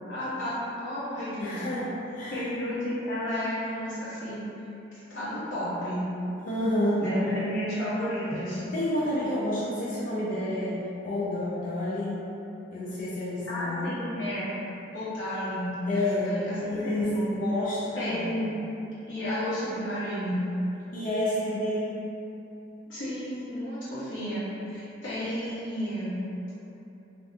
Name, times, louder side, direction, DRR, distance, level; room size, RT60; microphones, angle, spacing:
voice 1, 0.1-1.6 2.3-4.4 4.9-6.0 7.0-8.6 13.5-14.5 14.9-17.3 17.9-18.5 19.1-20.4 22.9-26.2, equal, 90° left, -12 dB, 1.1 m, -32 dB
voice 2, 1.4-2.5 6.4-7.0 8.7-10.8 11.0-12.2 12.7-13.9 15.9-17.1 17.4-18.3 20.9-22.0, left 1 dB, 45° left, -9 dB, 0.3 m, -29 dB
2.5 x 2.2 x 2.6 m, 2.9 s
head